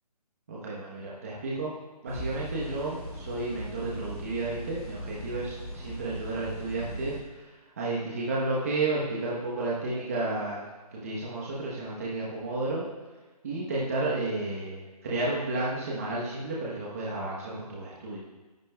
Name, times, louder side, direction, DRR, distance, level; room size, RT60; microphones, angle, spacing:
voice 1, 0.5-1.7 2.0-7.5 7.8-10.6 10.9-12.8 13.4-18.2, right 2 dB, 20° right, -5 dB, 1.0 m, -32 dB
sound 1, 2.1-7.2, equal, 20° left, 2.8 m, -39 dB
18.0 x 10.5 x 2.3 m, 1.2 s
hypercardioid pair, 175°, 20 cm